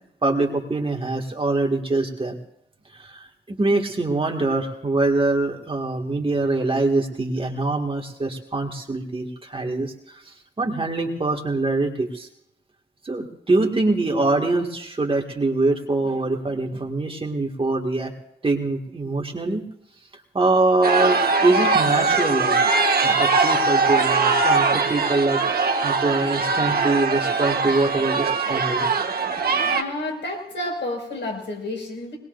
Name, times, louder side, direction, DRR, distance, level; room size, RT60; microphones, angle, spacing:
voice 1, 0.2-2.4 2.9-12.3 13.0-18.1 18.4-19.6 20.3-22.5 23.2-25.4 25.8-28.9, right 2 dB, 30° right, 1 dB, 2.1 m, -24 dB
sound 1, 20.8-29.8, right 4 dB, 60° right, 1.3 m, -21 dB
voice 2, 29.6-32.2, left 2 dB, 80° left, 1 dB, 5.8 m, -30 dB
21.5 x 20.5 x 2.6 m, 0.76 s
wide cardioid pair, 145°, 18 cm